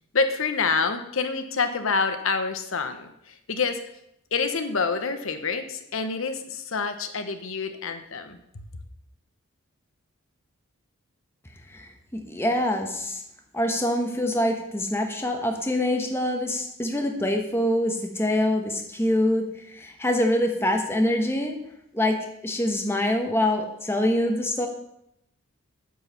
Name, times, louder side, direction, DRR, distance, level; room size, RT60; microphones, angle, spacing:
voice 1, 0.1-3.8 4.3-8.4, left 4 dB, 65° left, 8 dB, 0.9 m, -27 dB
voice 2, 11.7-13.2 13.5-21.6 21.9-24.7, left 1 dB, 10° left, 3 dB, 1.0 m, -25 dB
9.4 x 4.8 x 6.9 m, 0.79 s
head